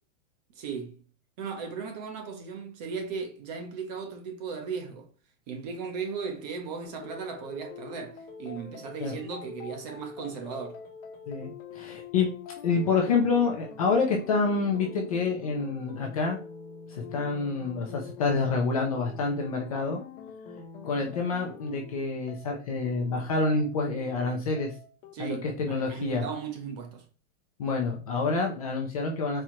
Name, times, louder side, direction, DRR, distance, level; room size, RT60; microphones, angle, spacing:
voice 1, 0.5-1.0 1.4-5.1 5.5-10.8 25.1-27.0, right 6 dB, 30° right, 0.7 m, -37 dB
sound 1, 6.8-25.1, left 5 dB, 45° left, 0.8 m, -45 dB
voice 2, 11.3-12.3 12.6-16.4 16.9-20.0 20.8-24.7 25.2-26.2 27.6-29.4, left 4 dB, 30° left, 0.4 m, -27 dB
4.3 x 2.3 x 2.9 m
supercardioid pair, 165°, 40 cm